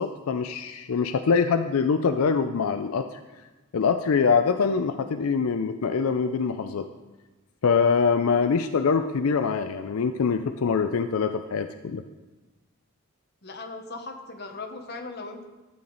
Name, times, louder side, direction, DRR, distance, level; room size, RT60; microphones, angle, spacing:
voice 1, 0.0-3.2 3.7-6.9 7.6-12.0, left 5 dB, 85° left, 8 dB, 0.5 m, -24 dB
voice 2, 13.4-15.5, left 3 dB, 50° left, 4 dB, 1.0 m, -38 dB
12.5 x 8.6 x 4.0 m, 1.2 s
head